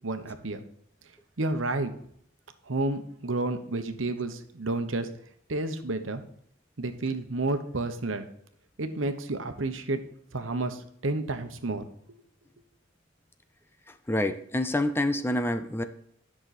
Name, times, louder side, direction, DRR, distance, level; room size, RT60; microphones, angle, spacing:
voice 1, 0.0-0.6 1.4-1.9 2.7-5.1 5.5-6.2 6.8-8.3 8.8-10.0 10.3-11.8, right 2 dB, 90° right, 8 dB, 1.0 m, -30 dB
voice 2, 13.9-15.8, left 1 dB, 10° left, 9 dB, 0.5 m, -27 dB
10.5 x 6.2 x 4.2 m, 0.68 s
head